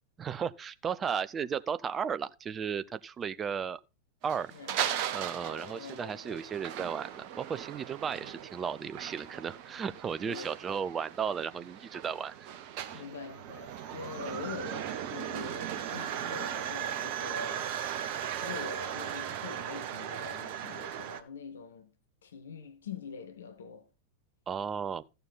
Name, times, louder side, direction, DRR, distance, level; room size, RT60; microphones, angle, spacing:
voice 1, 0.2-3.8 4.2-4.5 5.1-12.5 12.9-13.0 24.5-25.0, right 7 dB, 20° right, 0.6 m, -35 dB
sound 1, 4.2-21.2, right 10 dB, 45° right, 1.0 m, -38 dB
voice 2, 5.4-6.4 10.2-10.6 12.9-17.7 18.4-21.9 22.2-23.9, left 5 dB, 65° left, 0.9 m, -44 dB
14.0 x 6.8 x 4.1 m
figure-of-eight pair, 90°, 0 cm